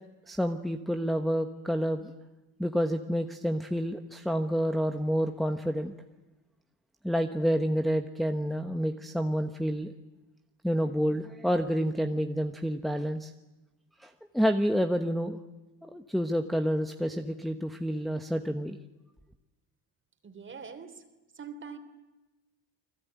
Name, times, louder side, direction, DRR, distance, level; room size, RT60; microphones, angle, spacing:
voice 1, 0.3-2.1 2.6-5.9 7.0-9.9 10.6-13.3 14.0-15.4 15.8-18.8, equal, ahead, 4 dB, 1.1 m, -29 dB
voice 2, 20.2-21.0 21.3-21.8, right 6 dB, 30° right, 8 dB, 3.3 m, -43 dB
30.0 x 21.0 x 9.4 m, 1.1 s
cardioid pair, 135°, 39 cm